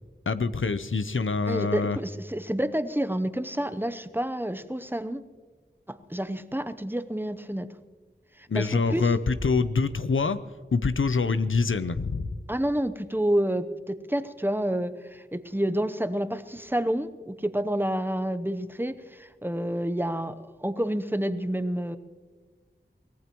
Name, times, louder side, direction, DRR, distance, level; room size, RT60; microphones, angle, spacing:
voice 1, 0.3-2.0 8.5-10.4 10.7-12.3, left 4 dB, 90° left, 13 dB, 0.7 m, -25 dB
voice 2, 1.5-5.2 5.9-7.7 8.4-9.1 12.5-22.0, right 1 dB, 10° right, 11 dB, 0.8 m, -29 dB
23.5 x 18.0 x 3.0 m, 1.4 s
wide cardioid pair, 45°, 20 cm